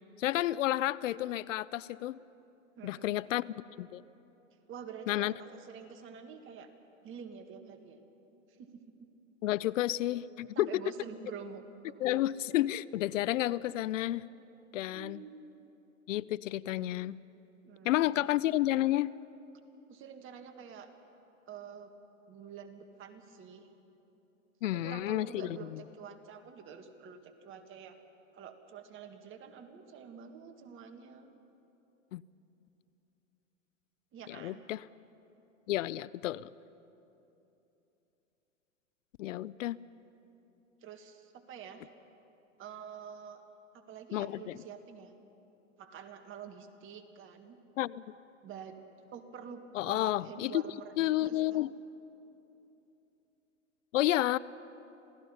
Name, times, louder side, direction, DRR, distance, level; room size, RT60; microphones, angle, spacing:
voice 1, 0.2-2.2 2.8-3.4 3.8-4.0 5.1-5.3 9.4-10.8 12.0-14.2 14.7-15.2 16.1-17.2 17.8-19.1 24.6-25.6 32.1-32.2 34.3-34.8 35.7-36.5 39.2-39.8 44.1-44.6 47.8-48.1 49.7-50.6 51.0-51.7 53.9-54.4, left 15 dB, 75° left, 20 dB, 0.5 m, -31 dB
voice 2, 2.8-3.2 4.7-6.7 7.0-8.0 8.5-8.7 10.6-12.0 14.9-15.6 17.6-18.2 19.9-20.9 21.5-21.9 22.3-23.7 24.6-28.0 28.3-31.3 34.1-34.6 40.8-41.9 42.6-43.4 43.7-45.1 45.8-47.6 48.4-48.8 49.1-51.6, right 7 dB, 30° right, 6 dB, 1.8 m, -47 dB
27.5 x 17.0 x 5.6 m, 3.0 s
hypercardioid pair, 115°, 39 cm